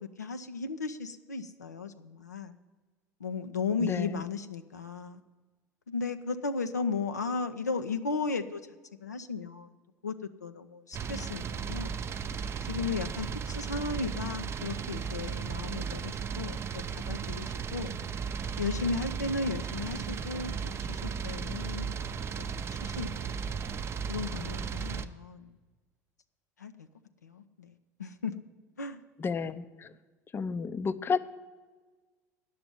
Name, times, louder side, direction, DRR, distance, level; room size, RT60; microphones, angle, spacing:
voice 1, 0.2-2.6 3.2-5.2 5.9-8.6 9.0-9.7 10.0-10.1 10.4-12.0 12.6-18.0 18.6-23.4 24.1-25.6 26.6-26.9 27.2-27.7 28.0-28.3 28.8-29.0, left 4 dB, 85° left, 8 dB, 0.5 m, -35 dB
voice 2, 3.8-4.2 29.2-29.9 30.3-31.2, left 5 dB, 25° left, 14 dB, 0.5 m, -31 dB
sound 1, 10.9-25.0, right 6 dB, 30° right, 0.6 m, -35 dB
10.0 x 6.9 x 9.2 m, 1.3 s
figure-of-eight pair, 70°, 9 cm